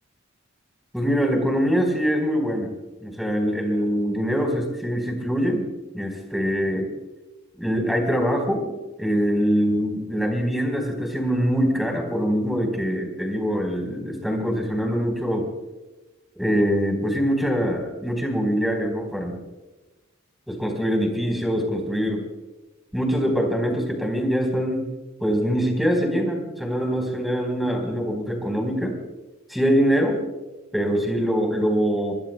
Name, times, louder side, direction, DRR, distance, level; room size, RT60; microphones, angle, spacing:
voice 1, 0.9-2.7 3.0-5.7 5.9-6.9 7.6-8.7 9.0-15.5 16.4-19.4 20.5-22.2 22.9-24.9 25.2-29.0 29.5-30.2 30.7-32.1, equal, ahead, 2 dB, 4.0 m, -23 dB
27.0 x 21.5 x 2.2 m, 1.1 s
head